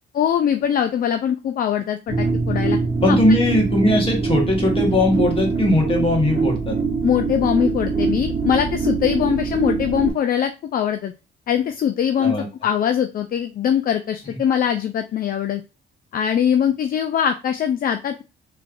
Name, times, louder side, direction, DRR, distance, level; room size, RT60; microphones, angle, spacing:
voice 1, 0.2-2.8 3.1-3.2 7.0-11.1 11.5-12.3 12.6-15.6 16.1-18.2, left 9 dB, 45° left, 7 dB, 0.4 m, -22 dB
sound 1, 2.1-10.1, right 4 dB, 15° right, 1.8 m, -23 dB
voice 2, 3.0-6.8 12.2-12.5, left 1 dB, 30° left, 1 dB, 1.3 m, -19 dB
3.2 x 3.0 x 2.5 m, 0.29 s
cardioid pair, 90°, 20 cm